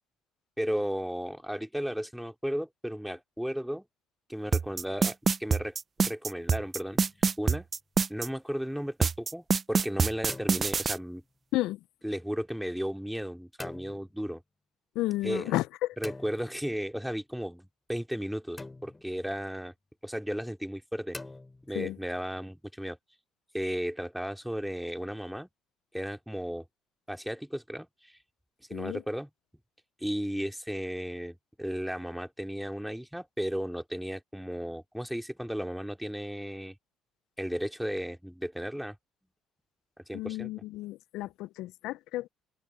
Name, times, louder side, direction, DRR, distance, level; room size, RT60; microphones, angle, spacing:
voice 1, 0.6-3.9 4.3-7.0 7.4-7.7 8.1-11.2 12.0-14.4 15.2-15.5 16.0-19.7 20.0-21.2 21.7-23.0 23.5-25.5 25.9-26.6 27.1-28.2 28.7-29.3 30.0-36.8 37.4-39.0 40.1-40.5, equal, ahead, 2.8 m, -34 dB
sound 1, 4.5-8.3 9.0-11.0, right 5 dB, 35° right, 0.7 m, -25 dB
sound 2, 6.9-7.4 10.0-11.3 13.6-14.2 16.0-17.0 18.6-19.3 21.1-22.0, left 2 dB, 20° left, 3.5 m, -45 dB
voice 2, 15.0-15.9 21.7-22.0 28.7-29.0 40.1-42.3, left 17 dB, 75° left, 0.5 m, -32 dB
hypercardioid pair, 60°, 0 cm